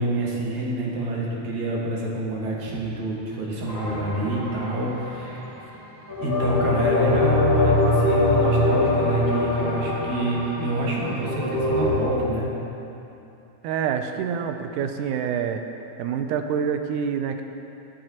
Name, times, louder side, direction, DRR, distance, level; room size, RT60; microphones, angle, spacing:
voice 1, 0.0-5.5 6.2-12.5, right 1 dB, 65° right, -4 dB, 2.9 m, -27 dB
sound 1, 3.6-5.4 6.1-12.0, left 2 dB, 30° left, 2.9 m, -23 dB
voice 2, 13.6-15.6 16.0-17.4, right 7 dB, 80° right, 6 dB, 2.1 m, -26 dB
22.5 x 7.7 x 3.0 m, 2.9 s
omnidirectional pair, 3.7 m